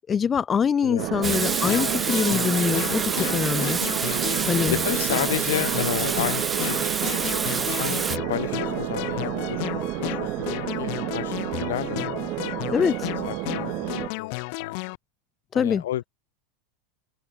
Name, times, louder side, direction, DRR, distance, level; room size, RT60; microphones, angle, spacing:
voice 1, 0.1-3.8 4.5-4.8 12.7-13.1 15.5-15.8, left 7 dB, 25° left, 0.5 m, -24 dB
sound 1, 1.0-14.1, right 21 dB, 50° right, 1.1 m, -30 dB
sound 2, 1.2-15.0, left 37 dB, 60° left, 3.1 m, -33 dB
Water tap faucet / Sink (filling or washing), 1.2-8.2, right 5 dB, 20° right, 0.7 m, -28 dB
voice 2, 4.7-6.9 7.8-12.4 12.8-12.9 13.2-14.9 15.5-16.1, left 13 dB, 85° left, 1.6 m, -32 dB
open air
supercardioid pair, 115°, 0 cm